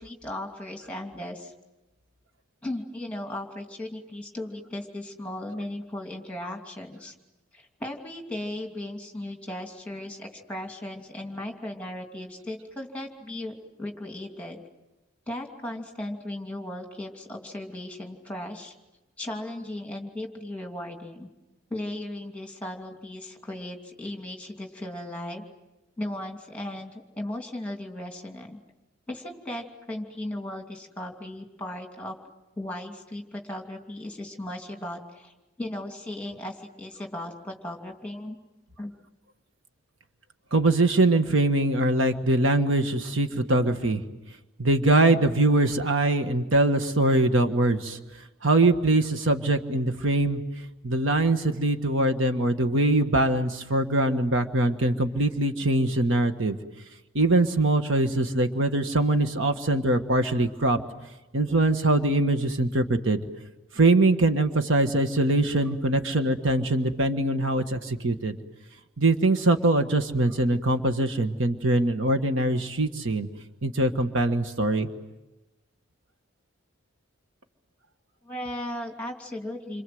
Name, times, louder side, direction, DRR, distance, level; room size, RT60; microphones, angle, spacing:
voice 1, 0.0-1.5 2.6-7.1 7.5-14.6 15.3-18.7 19.2-21.3 21.7-25.4 26.0-28.6 29.1-32.2 32.6-38.4 38.8-38.9 78.2-79.8, left 1 dB, 5° left, 3 dB, 2.8 m, -36 dB
voice 2, 40.5-44.0 44.6-48.0 48.4-50.4 50.8-56.6 57.1-60.8 61.3-63.2 63.7-68.3 69.0-73.3 73.6-74.9, right 2 dB, 65° right, 7 dB, 1.5 m, -23 dB
28.5 x 26.0 x 7.9 m, 1.0 s
head